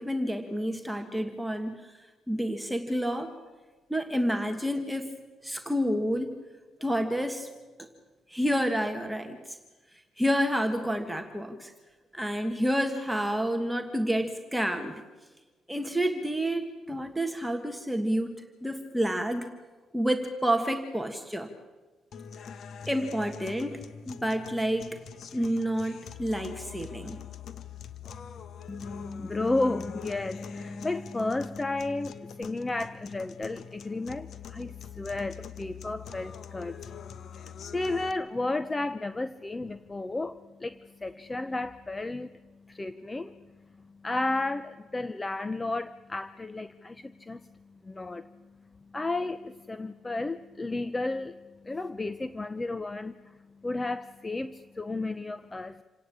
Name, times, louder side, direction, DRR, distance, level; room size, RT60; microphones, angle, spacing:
voice 1, 0.0-3.3 3.9-5.2 5.4-6.4 6.8-7.5 7.8-7.9 8.3-9.6 10.2-11.7 12.1-15.0 15.7-19.5 19.9-21.5 22.9-25.0 25.3-27.2, equal, 5° right, 5 dB, 1.6 m, -29 dB
sound 1, 22.1-38.1, left 7 dB, 60° left, 1.2 m, -44 dB
voice 2, 28.7-55.8, left 2 dB, 15° left, 13 dB, 0.7 m, -33 dB
28.0 x 18.0 x 8.7 m, 1.3 s
cardioid pair, 125°, 0 cm